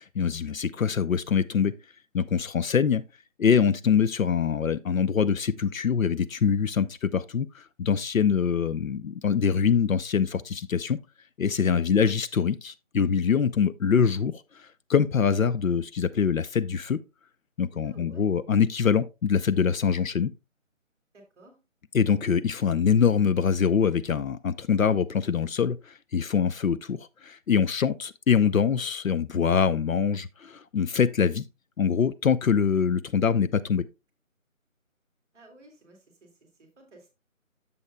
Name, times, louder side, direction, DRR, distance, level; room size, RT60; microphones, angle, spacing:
voice 1, 0.0-1.7 2.1-3.0 3.4-11.0 11.4-17.0 17.6-20.3 21.9-31.4 31.8-33.8, left 6 dB, 75° left, 0.6 m, -24 dB
voice 2, 11.7-12.1 17.8-18.4 21.1-21.6 35.3-37.1, right 2 dB, 5° right, 1.4 m, -54 dB
9.7 x 7.1 x 2.2 m
figure-of-eight pair, 160°, 41 cm